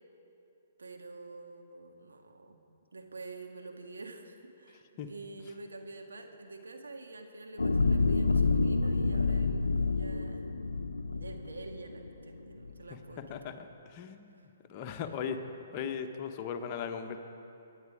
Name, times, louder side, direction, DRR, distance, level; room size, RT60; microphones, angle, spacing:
voice 1, 0.8-2.6 2.9-10.6 11.1-13.4 14.3-14.5, right 3 dB, 80° right, 3 dB, 1.6 m, -47 dB
sound 1, 7.6-12.1 12.6-12.7, left 3 dB, 90° left, 0.6 m, -28 dB
voice 2, 13.3-14.3 14.7-15.4 15.7-17.2, left 7 dB, 35° left, 6 dB, 1.1 m, -37 dB
23.0 x 9.9 x 4.9 m, 2.8 s
hypercardioid pair, 130°, 0 cm